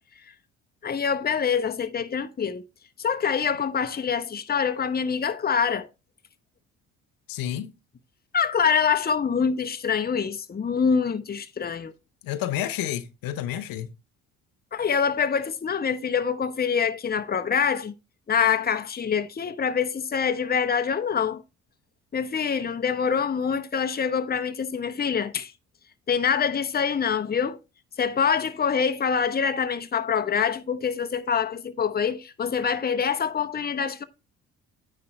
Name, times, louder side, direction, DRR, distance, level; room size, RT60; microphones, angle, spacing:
voice 1, 0.8-2.6 3.0-5.9 8.3-11.9 14.7-17.9 18.3-21.4 22.1-25.5 26.1-27.6 28.0-34.0, left 6 dB, 25° left, 0.8 m, -25 dB
voice 2, 7.3-7.7 12.2-13.9, left 11 dB, 65° left, 0.8 m, -30 dB
9.6 x 3.3 x 5.3 m
hypercardioid pair, 55°, 38 cm